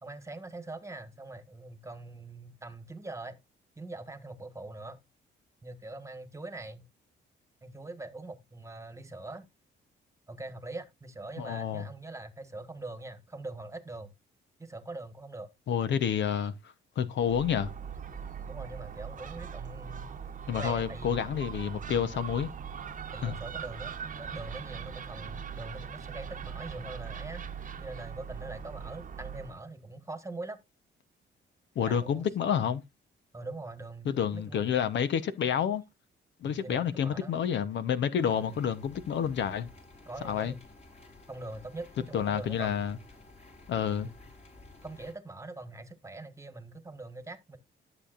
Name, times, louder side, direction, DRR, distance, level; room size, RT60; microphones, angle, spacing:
voice 1, 0.0-3.4 3.8-5.0 5.6-6.9 7.6-9.4 10.3-14.1 14.6-15.5 18.5-20.1 20.5-21.2 21.9-22.1 23.1-27.4 27.8-30.6 31.8-32.3 33.3-34.8 36.4-37.4 38.3-38.5 40.0-40.6 41.3-42.9 44.0-44.1 44.8-47.6, right 2 dB, 15° right, 1.5 m, -43 dB
voice 2, 11.4-11.9 15.7-16.5 17.0-17.7 20.5-22.5 23.2-23.3 31.8-32.8 34.0-35.8 36.4-39.7 40.2-40.5 42.1-43.0 43.7-44.1, left 8 dB, 65° left, 0.9 m, -29 dB
Gull seagull, 17.2-29.6, right 7 dB, 40° right, 1.0 m, -41 dB
sound 1, 38.2-45.1, left 2 dB, 35° left, 3.8 m, -53 dB
13.0 x 7.1 x 2.5 m
cardioid pair, 90°, 20 cm